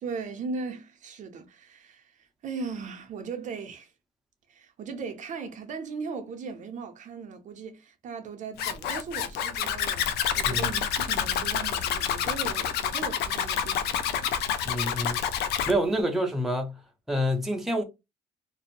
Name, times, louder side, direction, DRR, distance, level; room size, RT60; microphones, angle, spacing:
voice 1, 0.0-3.9 4.5-10.1 10.4-14.4, right 5 dB, 45° right, 0.5 m, -38 dB
Zipper (clothing), 8.6-15.7, left 8 dB, 75° left, 0.4 m, -28 dB
voice 2, 14.6-15.2 15.7-16.8 17.1-17.8, equal, ahead, 0.5 m, -27 dB
2.5 x 2.0 x 2.8 m
cardioid pair, 110°, 17 cm